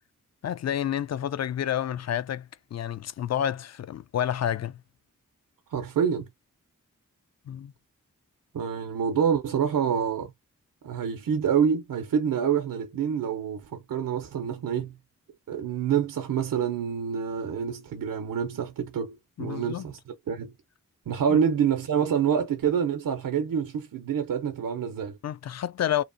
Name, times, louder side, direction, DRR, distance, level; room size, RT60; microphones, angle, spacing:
voice 1, 0.4-4.8 7.5-7.7 19.4-19.8 21.3-21.4 25.2-26.0, left 10 dB, 50° left, 0.4 m, -29 dB
voice 2, 5.7-6.3 8.5-10.3 10.8-15.0 15.5-20.0 20.3-20.5 21.1-25.2, right 7 dB, 75° right, 0.6 m, -27 dB
2.8 x 2.1 x 2.5 m
cardioid pair, 40°, 34 cm